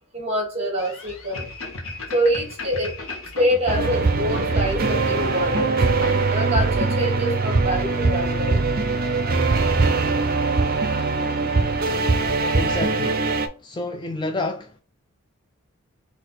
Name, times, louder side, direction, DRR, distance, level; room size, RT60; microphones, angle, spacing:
voice 1, 0.1-1.5 2.1-3.0 3.4-5.8 6.3-8.6, equal, 30° right, 1.7 m, -25 dB
sound 1, 0.8-6.5, left 2 dB, 75° left, 1.2 m, -36 dB
sound 2, 3.7-13.5, right 3 dB, 45° right, 0.6 m, -22 dB
voice 2, 12.5-13.3 13.6-14.8, left 2 dB, 20° left, 0.4 m, -29 dB
4.1 x 2.9 x 3.9 m
head